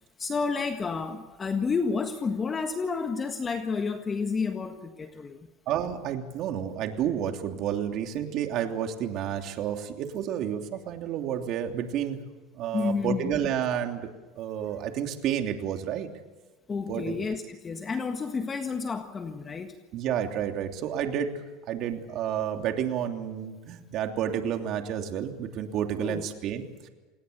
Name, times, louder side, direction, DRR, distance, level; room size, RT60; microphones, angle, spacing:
voice 1, 0.2-5.5 12.7-13.3 16.7-19.7 26.0-26.2, left 5 dB, 25° left, 6 dB, 1.6 m, -30 dB
voice 2, 5.7-12.2 12.6-14.1 14.4-16.1 16.9-17.2 19.9-21.4 21.7-26.9, right 9 dB, 50° right, 4 dB, 3.0 m, -30 dB
28.0 x 19.5 x 6.9 m, 1.2 s
supercardioid pair, 125°, 0 cm